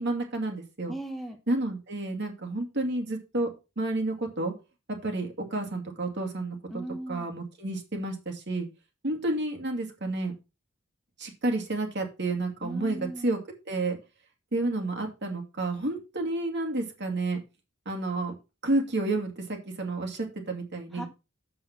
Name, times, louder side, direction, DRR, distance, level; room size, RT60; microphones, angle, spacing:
voice 1, 0.0-1.0 1.5-3.5 3.8-4.5 4.9-6.6 7.1-8.7 9.0-10.3 11.2-13.4 13.7-14.0 14.5-17.4 17.9-18.3 18.6-21.1, right 2 dB, 60° right, 2 dB, 2.5 m, -30 dB
voice 2, 0.9-1.4 6.7-7.3 12.6-13.3 20.9-21.1, right 1 dB, ahead, 4 dB, 1.0 m, -37 dB
7.6 x 5.7 x 5.9 m, 0.28 s
head